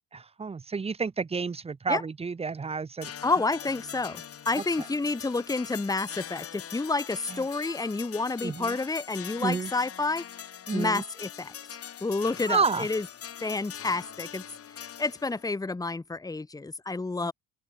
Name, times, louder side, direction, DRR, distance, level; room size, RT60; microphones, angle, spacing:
voice 1, 0.1-3.1 8.4-8.7 9.4-9.7 10.7-11.0 12.5-12.9 17.2-17.3, right 4 dB, 15° right, 0.8 m, -30 dB
sound 1, 3.0-15.5, left 9 dB, 40° left, 2.3 m, -42 dB
voice 2, 3.2-10.3 10.7-13.1 13.4-14.4 14.8-17.3, left 3 dB, 10° left, 1.4 m, -30 dB
open air
cardioid pair, 145°, 35 cm